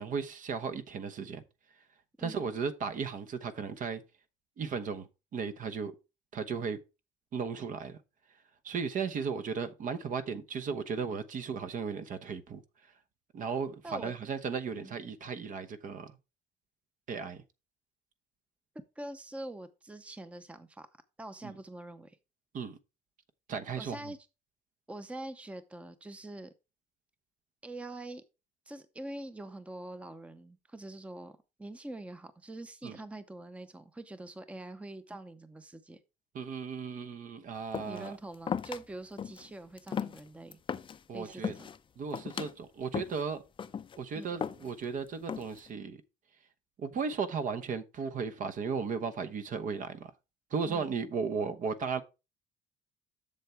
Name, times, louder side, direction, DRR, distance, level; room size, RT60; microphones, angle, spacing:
voice 1, 0.0-1.4 2.2-4.0 4.6-5.1 5.3-5.9 6.3-6.8 7.3-8.0 8.6-12.6 13.3-16.2 17.1-17.4 21.4-21.5 22.5-22.8 23.5-24.1 32.8-33.0 36.3-38.1 41.1-41.5 42.0-43.4 44.0-46.0 46.8-50.1 50.5-52.0, right 5 dB, 50° right, 1.0 m, -35 dB
voice 2, 18.7-20.9 21.2-22.2 23.8-24.3 24.9-26.5 27.6-28.2 28.7-36.0 37.9-40.6 41.1-41.7 44.1-44.3 50.6-50.9, right 1 dB, 5° right, 0.7 m, -44 dB
sound 1, 37.7-38.1 38.5-38.8 39.2-39.5 39.8-41.0 41.3-41.8 42.1-42.5 42.9-43.2 43.6-44.0 44.4-44.9 45.3-45.7, left 7 dB, 30° left, 0.5 m, -36 dB
7.5 x 7.0 x 3.5 m
cardioid pair, 110°, 17 cm